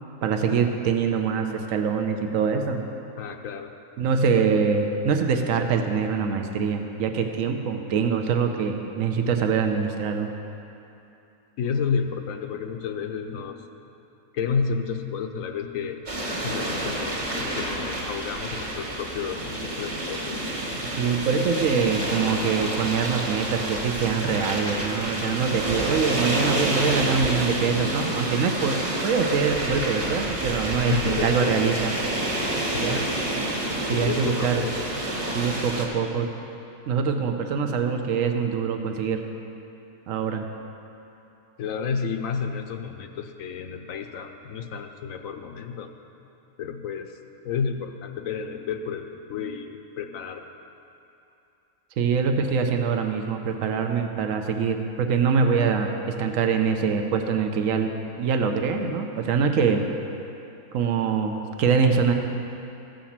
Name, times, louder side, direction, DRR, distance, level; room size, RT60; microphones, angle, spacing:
voice 1, 0.2-2.9 4.0-10.3 21.0-28.8 29.0-31.9 32.8-33.0 33.9-34.6 35.3-36.3 36.9-39.2 40.1-40.5 52.0-59.9 60.7-62.1, right 6 dB, 65° right, 5 dB, 1.1 m, -24 dB
voice 2, 3.2-3.7 11.6-13.7 14.3-16.0 16.4-20.4 30.9-31.7 32.7-33.3 33.9-34.9 41.6-45.9 46.6-47.1 47.4-50.4, left 6 dB, 70° left, 6 dB, 1.0 m, -31 dB
sound 1, 16.1-35.9, right 1 dB, 40° right, 1.8 m, -28 dB
14.5 x 5.1 x 7.2 m, 2.8 s
omnidirectional pair, 1.5 m